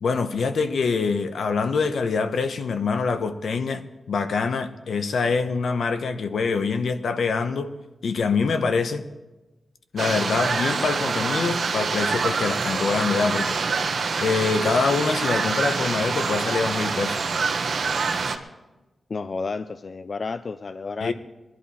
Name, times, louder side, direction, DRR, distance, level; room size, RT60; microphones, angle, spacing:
voice 1, 0.0-7.7 8.0-9.0 9.9-13.9 14.2-17.2 21.0-21.1, left 4 dB, 75° left, 0.9 m, -25 dB
sound 1, 10.0-18.4, right 4 dB, 60° right, 0.9 m, -26 dB
voice 2, 19.1-21.1, left 4 dB, 40° left, 0.3 m, -31 dB
20.5 x 11.0 x 4.2 m
wide cardioid pair, 180°, 0 cm